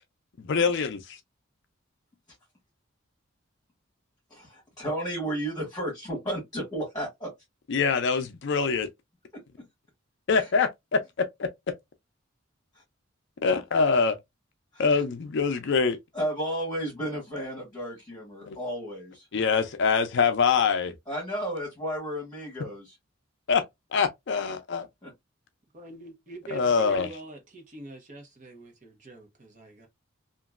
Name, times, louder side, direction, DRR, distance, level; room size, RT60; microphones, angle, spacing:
voice 1, 0.5-1.0 7.7-8.9 10.3-10.7 13.4-14.2 14.8-16.0 18.4-18.6 19.3-20.9 23.5-23.6 23.9-24.9 26.5-27.1, left 5 dB, 60° left, 0.5 m, -24 dB
voice 2, 4.3-7.3 10.3-10.5 14.7-14.9 16.1-19.3 21.1-23.0 25.0-25.1, right 1 dB, 20° left, 1.5 m, -33 dB
voice 3, 25.7-29.9, right 2 dB, 40° right, 0.9 m, -44 dB
2.9 x 2.5 x 2.3 m
head